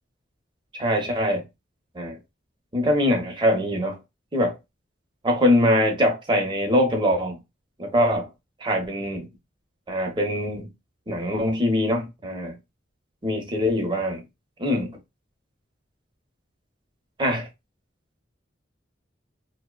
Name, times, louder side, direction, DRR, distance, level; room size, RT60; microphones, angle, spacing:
voice 1, 0.8-1.4 1.9-2.2 2.7-4.0 4.3-4.6 5.2-7.4 7.8-8.3 8.6-9.3 9.9-10.7 11.1-12.6 13.2-14.2 14.6-15.0 17.2-17.5, left 1 dB, 25° right, 0.6 m, -23 dB
2.7 x 2.0 x 2.2 m
head